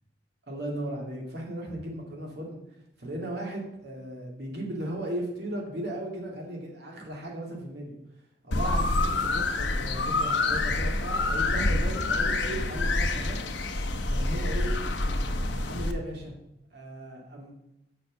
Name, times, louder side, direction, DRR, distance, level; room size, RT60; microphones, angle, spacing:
voice 1, 0.5-2.6 3.0-7.9 8.4-13.4 14.1-14.7 15.5-16.3 16.7-17.5, right 1 dB, 65° right, 0 dB, 2.4 m, -36 dB
sound 1, 8.5-15.9, left 2 dB, 80° left, 0.9 m, -27 dB
6.9 x 6.5 x 6.3 m, 0.87 s
head